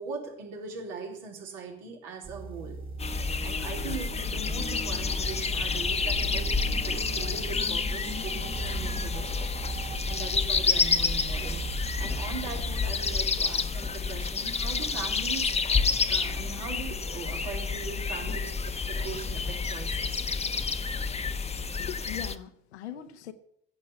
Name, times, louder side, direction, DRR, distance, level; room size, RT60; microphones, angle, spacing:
voice 1, 0.0-2.8 3.4-9.5 10.0-15.5 16.1-20.2 21.1-21.2, right 5 dB, 65° right, 3.8 m, -40 dB
sound 1, 2.2-13.2, right 5 dB, 35° right, 3.3 m, -39 dB
sound 2, 3.0-22.3, left 5 dB, 20° left, 1.0 m, -29 dB
voice 2, 21.8-23.3, left 10 dB, 75° left, 1.2 m, -40 dB
15.5 x 8.3 x 9.0 m
figure-of-eight pair, 60°, 34 cm